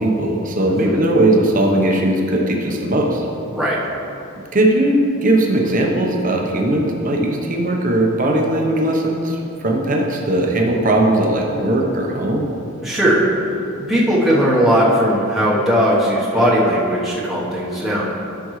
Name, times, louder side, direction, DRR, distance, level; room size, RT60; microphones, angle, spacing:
voice 1, 0.0-3.3 4.5-12.5, right 1 dB, 40° right, 0 dB, 1.0 m, -18 dB
voice 2, 12.8-13.3 13.9-18.0, equal, ahead, -8 dB, 1.1 m, -17 dB
12.0 x 6.1 x 3.2 m, 2.8 s
head